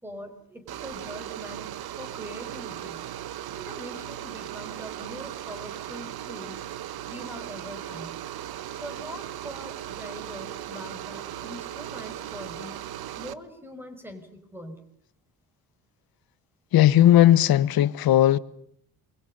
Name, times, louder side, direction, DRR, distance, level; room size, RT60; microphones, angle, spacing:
voice 1, 0.0-1.7 2.0-3.1 3.5-6.7 7.1-8.2 8.8-12.8 13.2-14.9, equal, 5° right, 5.5 m, -42 dB
sound 1, 0.7-13.3, right 12 dB, 80° right, 1.3 m, -37 dB
voice 2, 16.7-18.4, left 12 dB, 70° left, 1.2 m, -17 dB
28.0 x 23.5 x 5.5 m
cardioid pair, 120°, 37 cm